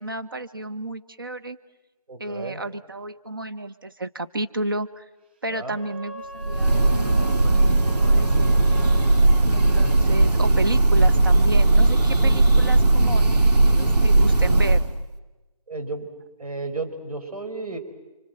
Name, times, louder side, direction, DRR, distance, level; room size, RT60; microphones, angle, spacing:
voice 1, 0.0-1.6 2.2-5.0 5.4-8.8 9.5-14.8, right 2 dB, 35° right, 10 dB, 1.0 m, -32 dB
voice 2, 2.1-2.6 5.5-5.8 15.7-16.1 16.4-17.8, right 3 dB, 70° right, 7 dB, 4.9 m, -33 dB
Wind instrument woodwind instrument, 5.6-10.0, right 3 dB, 15° right, 3.0 m, -40 dB
Breathing / Bird, 6.4-15.0, right 2 dB, 90° right, 2.1 m, -18 dB
28.5 x 26.0 x 7.8 m, 1.1 s
figure-of-eight pair, 175°, 20 cm